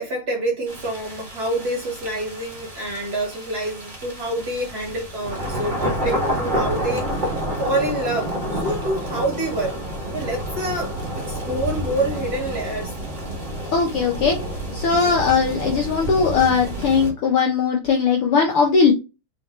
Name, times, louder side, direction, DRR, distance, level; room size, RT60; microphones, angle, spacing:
voice 1, 0.0-9.7 10.1-12.9 15.0-15.2, right 1 dB, 40° right, 1.5 m, -27 dB
sound 1, 0.7-17.1, right 1 dB, 25° right, 1.1 m, -29 dB
voice 2, 13.7-14.4 14.7-18.9, left 5 dB, 70° left, 1.4 m, -19 dB
4.3 x 3.8 x 3.2 m
omnidirectional pair, 3.3 m